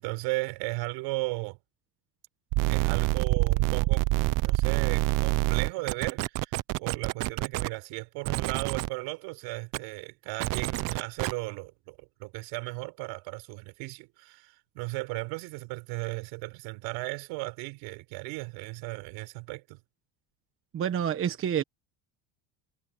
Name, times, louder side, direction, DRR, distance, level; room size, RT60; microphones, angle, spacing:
voice 1, 0.0-1.6 2.7-4.1 4.4-19.8, right 24 dB, 70° right, 4.2 m, -36 dB
sound 1, 2.5-7.7 8.3-8.9 9.7-9.8 10.4-11.3, right 20 dB, 45° right, 0.6 m, -26 dB
voice 2, 20.7-21.6, right 9 dB, 30° right, 1.2 m, -28 dB
cardioid pair, 155°, 47 cm